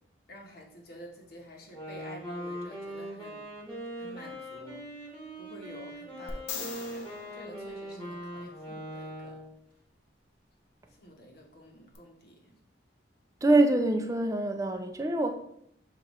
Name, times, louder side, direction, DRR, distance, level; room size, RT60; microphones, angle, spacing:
voice 1, 0.3-3.5 4.0-4.8 5.4-7.1 7.3-9.4 11.0-12.5, equal, 55° left, 0.9 m, -49 dB
Wind instrument woodwind instrument, 1.6-9.6, equal, 10° left, 1.5 m, -41 dB
sound 1, 6.3-8.5 11.9-12.0, left 6 dB, 80° left, 0.5 m, -42 dB
voice 2, 13.4-15.3, right 2 dB, 20° right, 0.4 m, -25 dB
6.8 x 2.4 x 3.0 m
head